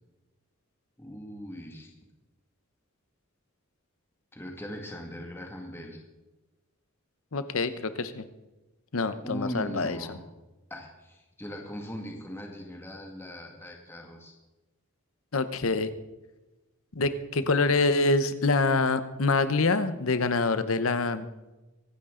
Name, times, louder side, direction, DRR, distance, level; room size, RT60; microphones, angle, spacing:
voice 1, 1.0-1.9 4.3-6.0 9.2-10.3 10.7-14.3, equal, 10° left, 1 dB, 2.0 m, -39 dB
voice 2, 7.3-8.2 8.9-10.0 15.3-15.9 16.9-21.3, left 3 dB, 70° left, 12 dB, 0.9 m, -26 dB
24.0 x 10.0 x 3.8 m, 1.1 s
head